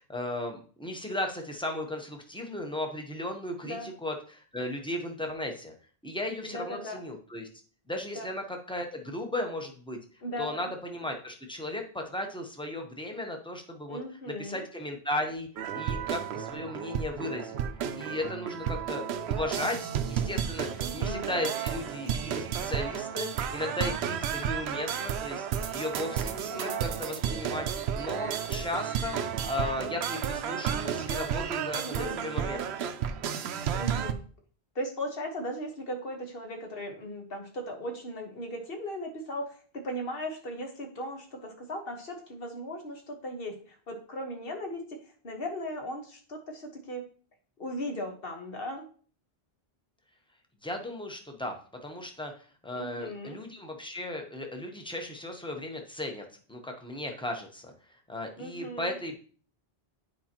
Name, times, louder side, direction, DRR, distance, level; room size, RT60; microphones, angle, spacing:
voice 1, 0.0-5.7 6.0-7.5 7.9-10.0 10.4-14.0 14.3-15.5 15.7-17.6 17.9-19.0 19.3-25.5 25.7-27.7 27.9-32.9 50.6-51.5 51.8-57.7 58.1-59.3, left 1 dB, 5° left, 3 dB, 0.9 m, -36 dB
voice 2, 6.4-7.0 8.1-8.3 10.2-10.7 13.9-14.6 20.8-21.3 26.5-27.0 31.8-32.2 33.7-34.2 34.7-45.0 45.2-47.0 47.6-48.9 52.7-53.4 58.4-59.0, equal, 65° left, 3 dB, 1.5 m, -37 dB
sound 1, 15.6-34.1, right 8 dB, 85° right, 0.8 m, -32 dB
9.1 x 4.7 x 2.9 m, 0.42 s
omnidirectional pair, 1.1 m